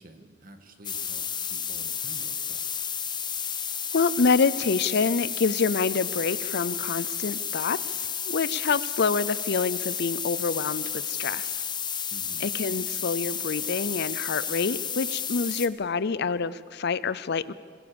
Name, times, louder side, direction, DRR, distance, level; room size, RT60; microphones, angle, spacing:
voice 1, 0.0-2.7 12.1-12.5, right 1 dB, 50° right, 6 dB, 2.0 m, -49 dB
sound 1, 0.8-15.7, left 7 dB, 25° left, 1.0 m, -32 dB
voice 2, 3.9-11.6 12.4-17.5, left 4 dB, 60° left, 17 dB, 0.6 m, -27 dB
22.0 x 21.5 x 7.0 m, 2.1 s
head